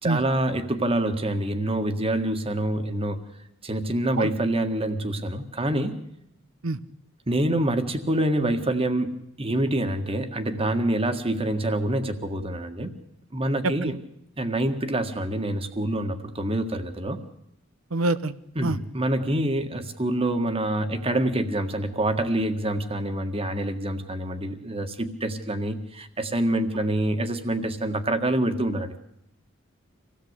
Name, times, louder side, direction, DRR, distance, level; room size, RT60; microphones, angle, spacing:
voice 1, 0.0-3.2 3.6-5.9 7.3-9.1 9.4-12.9 13.3-14.0 14.4-17.2 18.5-29.0, right 1 dB, 30° right, 8 dB, 1.8 m, -26 dB
voice 2, 17.9-18.3 18.6-18.8, right 2 dB, 90° right, 14 dB, 1.0 m, -25 dB
25.5 x 17.0 x 8.2 m, 0.81 s
head